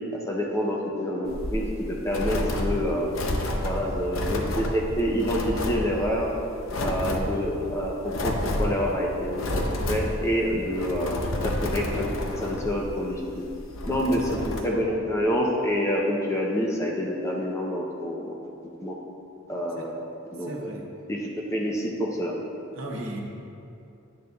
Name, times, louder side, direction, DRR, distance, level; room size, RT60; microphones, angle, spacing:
voice 1, 0.1-1.6 1.9-3.1 3.6-6.3 6.8-9.6 9.9-12.1 12.4-13.4 13.9-18.4 18.8-18.9 19.5-20.0 20.3-20.7 21.1-21.2 21.5-22.3, equal, 15° left, -2 dB, 0.6 m, -27 dB
sound 1, 1.3-14.6, left 1 dB, 75° left, 0.7 m, -30 dB
voice 2, 10.4-10.7 13.9-15.0 19.8-19.9 20.4-20.9 22.7-23.2, right 1 dB, 70° right, -1 dB, 0.8 m, -38 dB
10.5 x 6.5 x 2.3 m, 2.7 s
head